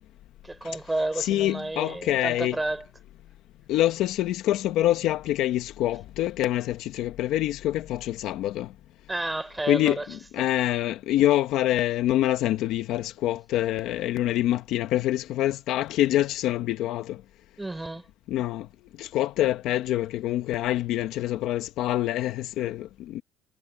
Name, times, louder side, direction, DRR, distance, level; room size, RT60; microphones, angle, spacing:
voice 1, 0.4-2.8 9.1-10.0 10.4-10.5 17.6-18.0, right 2 dB, 10° right, 5.0 m, -31 dB
voice 2, 1.1-2.6 3.7-8.7 9.7-17.2 18.3-18.7 19.0-23.2, left 14 dB, 60° left, 1.0 m, -26 dB
cardioid pair, 155°, 0 cm